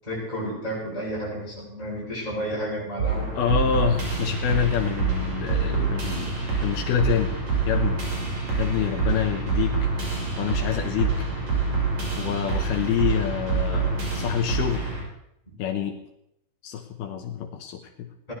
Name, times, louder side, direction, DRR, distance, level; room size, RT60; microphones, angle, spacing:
voice 1, 0.0-3.3 15.5-15.6 18.3-18.4, equal, 10° left, -7 dB, 7.9 m, -31 dB
sound 1, 3.0-15.0, right 4 dB, 45° right, 7.3 m, -26 dB
voice 2, 3.4-7.4 7.7-8.0 8.6-9.9 10.4-11.1 12.2-14.9 15.6-16.0 16.6-18.1, left 9 dB, 80° left, 4 dB, 2.9 m, -27 dB
21.5 x 17.5 x 3.2 m, 0.80 s
omnidirectional pair, 4.6 m